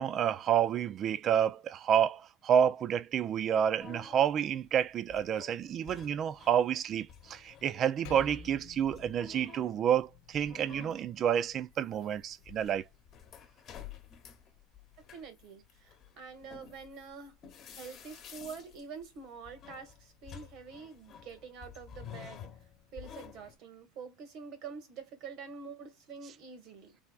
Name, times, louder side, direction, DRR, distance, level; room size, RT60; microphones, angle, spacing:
voice 1, 0.0-12.9, right 9 dB, 40° right, 0.4 m, -29 dB
sound 1, 3.8-6.8 7.1-23.6, left 8 dB, 40° left, 1.1 m, -51 dB
Percussion, 8.0-12.8, left 5 dB, 65° left, 0.8 m, -53 dB
voice 2, 15.1-17.4 17.7-22.5 22.9-27.0, right 5 dB, 60° right, 1.6 m, -46 dB
3.4 x 3.3 x 2.4 m
supercardioid pair, 105°, 0 cm